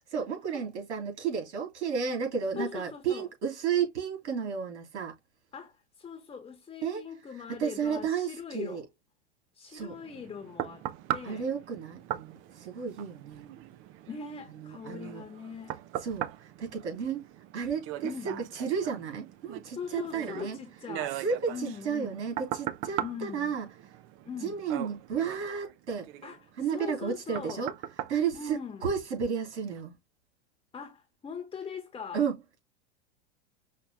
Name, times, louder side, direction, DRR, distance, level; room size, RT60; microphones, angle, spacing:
voice 1, 0.1-5.2 6.8-7.1 7.5-8.8 9.7-10.0 11.2-13.5 14.5-15.2 16.0-17.3 17.5-20.6 21.1-23.7 24.4-26.1 26.6-27.7 28.1-30.0 32.1-32.6, right 6 dB, 80° right, 2.9 m, -32 dB
voice 2, 2.5-3.3 5.5-8.8 9.5-10.9 11.1-11.5 14.1-15.8 18.0-18.4 19.7-21.2 21.5-22.1 23.0-23.5 24.2-24.6 26.2-27.7 28.3-28.8 30.7-32.2, left 6 dB, 15° left, 0.9 m, -41 dB
sound 1, 9.9-29.2 29.7-29.8, right 12 dB, 40° right, 0.5 m, -40 dB
5.7 x 2.3 x 3.3 m
supercardioid pair, 125°, 34 cm